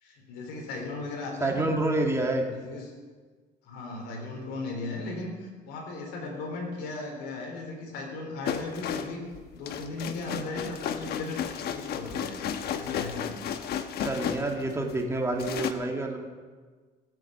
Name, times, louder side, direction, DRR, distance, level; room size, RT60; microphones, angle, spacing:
voice 1, 0.0-1.7 2.5-2.9 3.6-9.2 9.5-13.4, left 2 dB, 90° left, 0 dB, 3.6 m, -37 dB
voice 2, 1.4-2.5 14.0-16.2, right 2 dB, 15° right, 1 dB, 2.5 m, -28 dB
sound 1, 8.5-15.0 15.4-15.7, left 8 dB, 70° left, 1.1 m, -33 dB
17.0 x 8.5 x 7.7 m, 1.5 s
cardioid pair, 110°, 17 cm